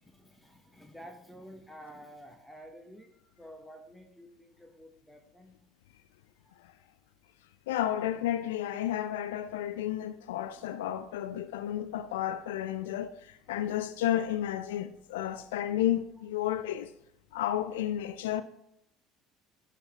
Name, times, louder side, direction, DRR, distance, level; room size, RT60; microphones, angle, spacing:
voice 1, 0.0-5.6 6.4-6.6 13.5-13.8, equal, 5° left, 1.1 m, -51 dB
voice 2, 7.7-16.9 17.3-18.4, left 12 dB, 70° left, 0.3 m, -32 dB
12.0 x 4.1 x 3.0 m
figure-of-eight pair, 60°, 0 cm